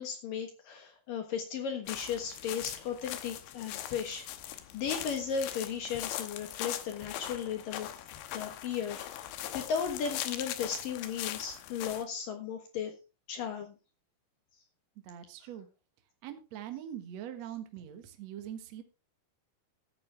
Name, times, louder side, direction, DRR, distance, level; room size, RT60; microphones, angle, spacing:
voice 1, 0.0-8.0 8.3-12.9 13.3-13.8, left 7 dB, 60° left, 5 dB, 2.5 m, -36 dB
sound 1, 1.9-12.0, left 12 dB, 80° left, 3.3 m, -40 dB
voice 2, 15.0-15.7 16.2-18.8, right 10 dB, 65° right, 7 dB, 1.7 m, -42 dB
15.0 x 8.7 x 3.5 m, 0.29 s
omnidirectional pair, 5.3 m